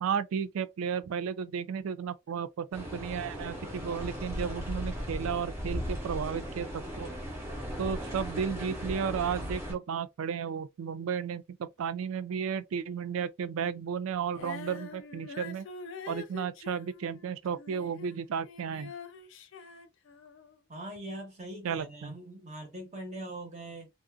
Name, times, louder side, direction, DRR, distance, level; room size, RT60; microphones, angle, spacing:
voice 1, 0.0-7.1 7.8-15.7 16.1-18.9 21.6-22.1, right 7 dB, 80° right, 0.3 m, -33 dB
sound 1, 2.7-9.7, equal, 15° right, 0.9 m, -37 dB
Female singing, 14.3-18.2 18.4-20.6, left 5 dB, 65° left, 0.4 m, -45 dB
voice 2, 20.7-23.9, right 1 dB, 35° right, 1.0 m, -42 dB
2.5 x 2.3 x 2.3 m
head